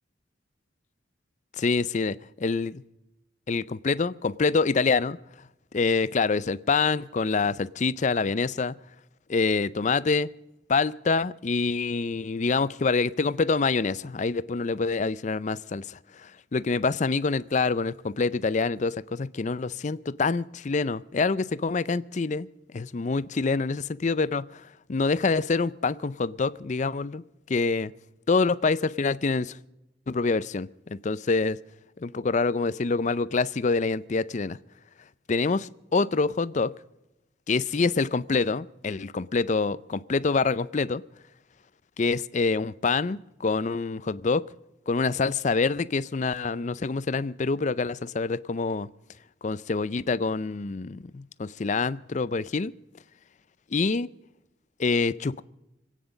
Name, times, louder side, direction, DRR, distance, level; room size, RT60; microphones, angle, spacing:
voice 1, 1.6-2.8 3.5-5.2 5.7-8.8 9.3-10.3 10.7-27.2 27.5-27.9 28.3-29.6 30.1-31.6 32.0-34.6 35.3-36.7 37.5-41.0 42.0-44.4 44.9-48.9 49.4-52.7 53.7-54.1 54.8-55.4, left 4 dB, 40° left, 17 dB, 0.5 m, -26 dB
26.0 x 9.3 x 5.1 m, 0.93 s
head